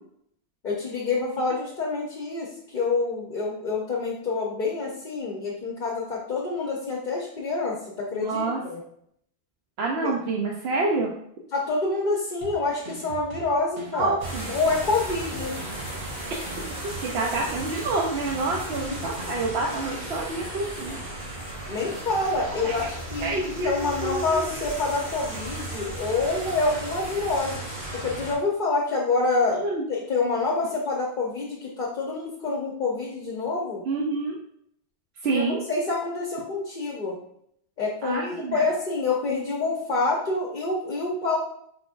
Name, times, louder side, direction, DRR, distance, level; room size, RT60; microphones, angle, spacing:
voice 1, 0.6-8.8 10.0-10.1 11.5-14.2 14.5-15.5 21.7-27.6 28.0-29.6 29.9-33.8 35.3-37.2 37.8-41.4, left 3 dB, 55° left, -3 dB, 0.9 m, -27 dB
voice 2, 8.1-8.6 9.8-11.1 13.9-14.5 17.0-21.0 22.6-22.7 23.2-24.6 29.6-29.8 33.9-34.4 35.2-35.6 38.0-38.6, right 3 dB, 90° right, -1 dB, 0.9 m, -28 dB
sound 1, 12.4-19.6, right 1 dB, 50° right, 0.8 m, -42 dB
sound 2, 14.2-28.3, right 1 dB, 65° right, 2.3 m, -35 dB
5.0 x 4.0 x 2.4 m, 0.70 s
omnidirectional pair, 1.0 m